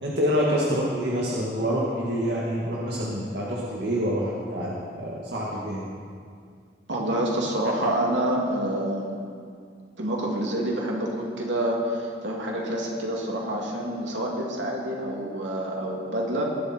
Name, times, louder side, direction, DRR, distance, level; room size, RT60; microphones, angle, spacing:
voice 1, 0.0-5.8, equal, 70° right, -5 dB, 2.0 m, -27 dB
voice 2, 6.9-9.1 10.0-16.5, right 1 dB, 90° right, -2 dB, 2.9 m, -27 dB
20.0 x 11.5 x 4.5 m, 2.2 s
head